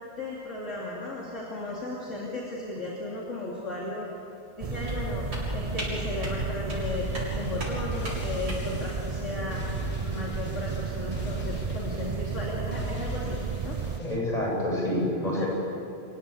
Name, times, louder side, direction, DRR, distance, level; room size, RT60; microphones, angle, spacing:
voice 1, 0.2-4.1 4.6-5.2 5.5-7.0 7.3-9.6 10.0-13.4 13.6-13.8 15.3-15.4, left 2 dB, 50° left, -4 dB, 3.3 m, -35 dB
sound 1, 4.6-14.0, right 6 dB, 50° right, 0.4 m, -33 dB
sound 2, 4.7-8.8, equal, 80° right, 7.7 m, -36 dB
sound 3, 6.8-14.2, left 2 dB, 85° left, 3.0 m, -40 dB
voice 2, 14.0-15.5, left 1 dB, 25° left, -4 dB, 7.9 m, -27 dB
28.5 x 17.0 x 8.6 m, 2.6 s
omnidirectional pair, 1.7 m